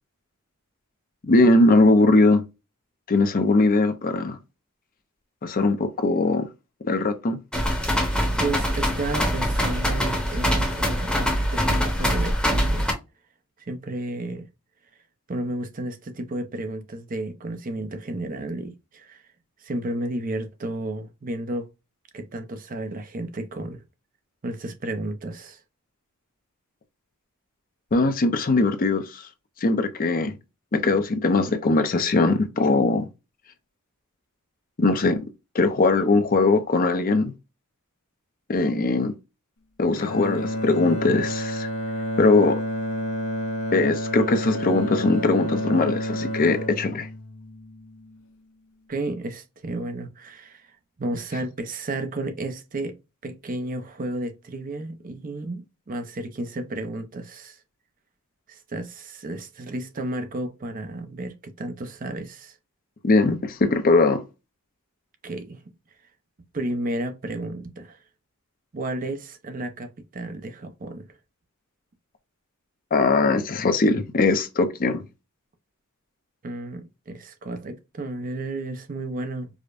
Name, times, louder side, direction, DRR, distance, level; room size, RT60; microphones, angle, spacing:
voice 1, 1.2-2.4 3.1-4.4 5.4-6.5 6.8-7.4 27.9-29.2 29.6-30.3 30.7-33.1 34.8-35.2 35.5-37.3 38.5-39.1 39.8-41.7 42.2-42.6 43.7-47.1 63.0-64.2 72.9-75.0, left 3 dB, 40° left, 0.5 m, -20 dB
sound 1, 7.5-12.9, equal, 5° left, 0.8 m, -23 dB
voice 2, 8.4-12.9 13.7-14.5 15.3-19.2 19.6-21.7 22.1-23.8 24.4-25.6 48.9-52.9 53.2-57.6 58.5-62.5 65.2-65.6 66.5-68.0 68.7-71.1 76.4-79.5, right 2 dB, 40° right, 0.6 m, -32 dB
Bowed string instrument, 39.9-48.2, equal, 70° left, 0.8 m, -30 dB
4.9 x 2.1 x 2.4 m
head